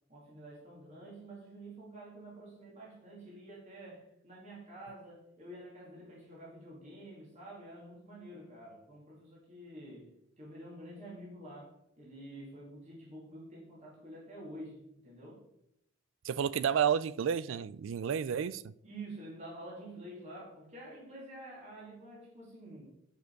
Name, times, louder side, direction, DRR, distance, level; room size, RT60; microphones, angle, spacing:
voice 1, 0.1-15.4 18.8-22.9, right 1 dB, 35° right, 2.5 m, -49 dB
voice 2, 16.2-18.7, right 8 dB, 70° right, 0.3 m, -31 dB
10.5 x 5.1 x 4.6 m
head